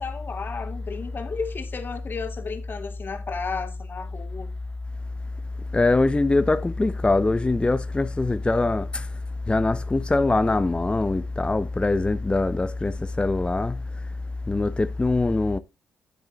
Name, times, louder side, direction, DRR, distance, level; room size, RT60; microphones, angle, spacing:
voice 1, 0.0-4.5, left 5 dB, 45° left, 2.5 m, -33 dB
voice 2, 5.7-9.1 9.5-13.8 14.5-15.6, left 2 dB, 20° left, 0.8 m, -23 dB
10.5 x 8.0 x 2.5 m
hypercardioid pair, 45°, 5 cm